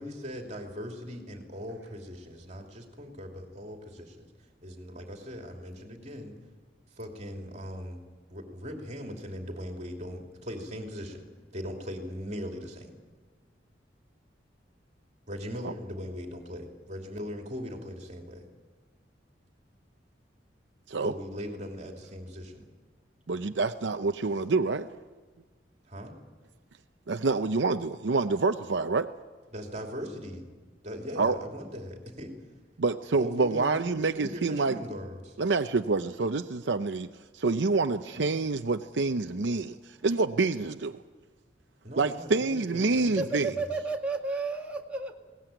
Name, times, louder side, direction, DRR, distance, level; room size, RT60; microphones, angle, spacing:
voice 1, 0.0-4.3 4.6-6.3 7.0-8.0 8.3-11.2 11.5-12.9 15.3-18.4 21.0-22.7 25.9-26.1 29.5-30.5 30.8-32.4 33.1-35.4 41.8-43.6, equal, 40° right, 2 dB, 2.9 m, -39 dB
voice 2, 23.3-24.9 27.1-29.1 31.2-31.4 32.8-34.8 35.4-37.1 37.3-39.8 40.0-41.0 42.0-43.5, right 3 dB, 75° right, 8 dB, 0.7 m, -27 dB
voice 3, 39.7-40.1 43.0-45.2, right 3 dB, 5° right, -1 dB, 2.0 m, -33 dB
21.5 x 18.0 x 9.1 m, 1.4 s
head